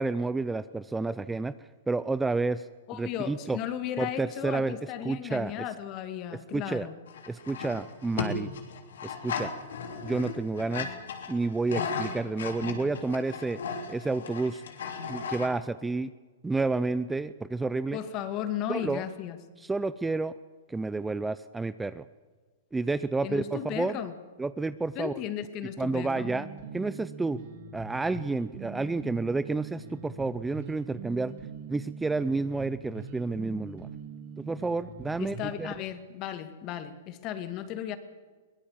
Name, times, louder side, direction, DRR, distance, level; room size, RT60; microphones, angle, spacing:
voice 1, 0.0-1.5 1.9-2.7 2.9-3.6 4.0-4.8 5.0-5.6 6.5-6.9 7.3-8.5 9.0-9.5 10.0-10.9 11.3-13.6 13.9-14.6 15.1-16.1 16.4-18.0 18.7-19.0 19.6-20.3 20.7-22.0 22.7-24.0 24.4-25.1 25.8-26.5 26.7-27.4 27.7-31.3 31.7-33.9 34.4-35.7, right 3 dB, 10° right, 15 dB, 0.5 m, -30 dB
voice 2, 2.9-7.0 17.9-19.4 23.2-24.1 24.9-26.3 35.2-38.0, left 10 dB, 35° left, 9 dB, 2.2 m, -35 dB
sound 1, 7.1-15.5, left 5 dB, 80° left, 3.3 m, -36 dB
sound 2, 26.1-35.7, right 5 dB, 60° right, 3.7 m, -43 dB
22.5 x 18.0 x 7.4 m, 1.4 s
hypercardioid pair, 130°, 0 cm